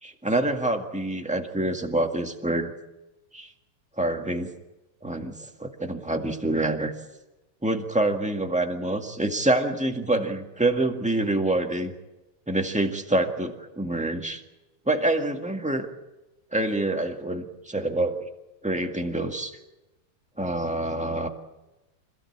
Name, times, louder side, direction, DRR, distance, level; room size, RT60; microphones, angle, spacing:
voice 1, 0.0-2.7 3.3-3.5 4.0-4.5 5.0-5.3 5.6-6.9 7.6-11.9 12.5-14.4 14.8-15.9 16.5-18.3 18.6-19.6 20.4-21.3, right 2 dB, 5° right, 4 dB, 0.9 m, -26 dB
26.5 x 16.5 x 8.6 m, 1.0 s
omnidirectional pair, 3.5 m